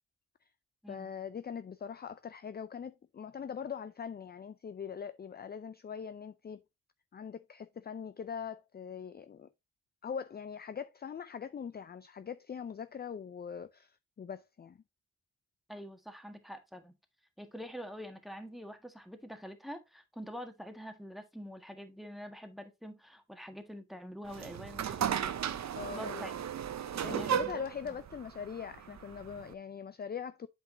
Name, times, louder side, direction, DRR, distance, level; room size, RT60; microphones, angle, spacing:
voice 1, 0.9-6.6 7.1-9.5 10.0-14.8 25.8-26.3 27.0-30.5, left 7 dB, 30° left, 0.5 m, -42 dB
voice 2, 15.7-16.9 17.4-25.3 25.9-26.3 26.9-27.5, equal, ahead, 1.6 m, -46 dB
sound 1, 24.3-29.5, right 9 dB, 55° right, 0.7 m, -35 dB
7.9 x 5.1 x 2.7 m
supercardioid pair, 55°, 33 cm